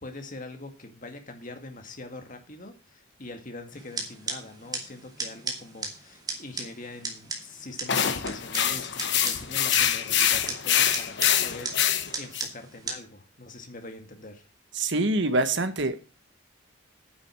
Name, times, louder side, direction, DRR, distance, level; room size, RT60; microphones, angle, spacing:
voice 1, 0.0-14.5, left 2 dB, 40° left, 2.0 m, -43 dB
sound 1, 3.7-13.0, right 3 dB, 20° right, 2.5 m, -37 dB
sound 2, 7.9-12.5, left 9 dB, 55° left, 1.2 m, -25 dB
voice 2, 14.7-16.0, right 2 dB, 60° right, 1.3 m, -25 dB
9.7 x 7.7 x 6.1 m
head